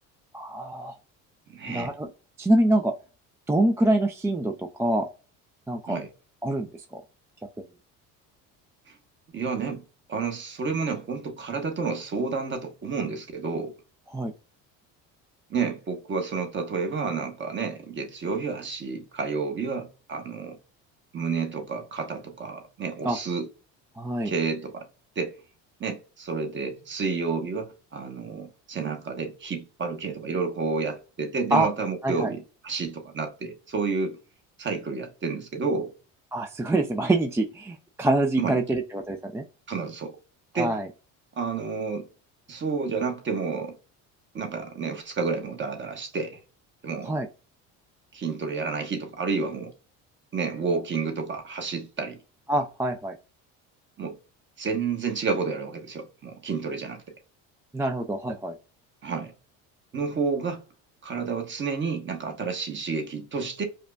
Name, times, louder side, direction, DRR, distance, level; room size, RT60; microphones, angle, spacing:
voice 1, 0.3-0.9 1.7-2.1 2.4-2.9 3.5-5.1 5.7-6.0 6.4-7.0 14.1-14.3 23.0-23.2 24.0-24.3 31.5-31.7 32.0-32.3 36.3-39.4 40.5-40.9 47.0-47.3 52.5-53.2 57.7-58.5, right 1 dB, 10° right, 0.3 m, -25 dB
voice 2, 1.5-1.9 5.9-6.1 8.9-9.0 9.3-13.7 15.5-20.6 21.1-23.5 24.2-24.9 25.2-25.3 25.8-34.2 34.6-35.9 38.4-38.8 39.7-40.2 40.5-40.8 41.4-42.1 42.5-43.8 44.3-46.4 46.8-47.1 48.1-49.7 50.3-52.2 54.0-54.2 54.6-57.0 59.0-59.3 59.9-60.6 61.0-63.6, right 4 dB, 30° right, 1.1 m, -30 dB
5.0 x 2.2 x 2.3 m
cardioid pair, 110°, 35 cm